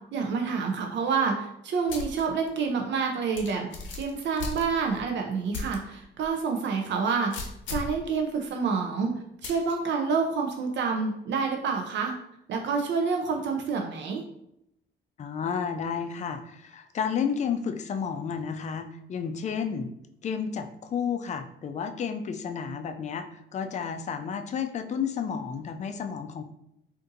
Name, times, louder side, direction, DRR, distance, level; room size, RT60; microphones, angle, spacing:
voice 1, 0.1-3.7 4.0-7.3 7.7-9.1 9.4-12.1 12.5-14.2, right 5 dB, 65° right, 3 dB, 0.5 m, -28 dB
sound 1, 1.9-2.2 2.6-2.7 3.4-5.0 5.5-5.8 6.2-6.3 7.3-8.0 9.4-9.7, left 4 dB, 70° left, 0.7 m, -36 dB
voice 2, 15.2-19.9 20.2-26.4, left 6 dB, 35° left, 7 dB, 0.4 m, -31 dB
3.7 x 2.6 x 2.6 m, 0.79 s
cardioid pair, 90°, 20 cm